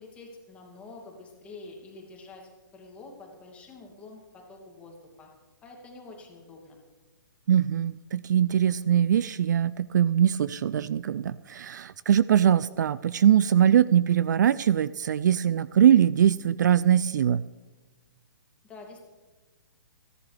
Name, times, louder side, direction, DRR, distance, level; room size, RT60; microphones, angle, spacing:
voice 1, 0.0-5.3 5.6-6.8 18.6-19.0, left 3 dB, 10° left, -1 dB, 2.6 m, -47 dB
voice 2, 7.5-17.4, right 9 dB, 55° right, 18 dB, 0.4 m, -22 dB
28.0 x 11.0 x 3.4 m, 1.3 s
hypercardioid pair, 160°, 11 cm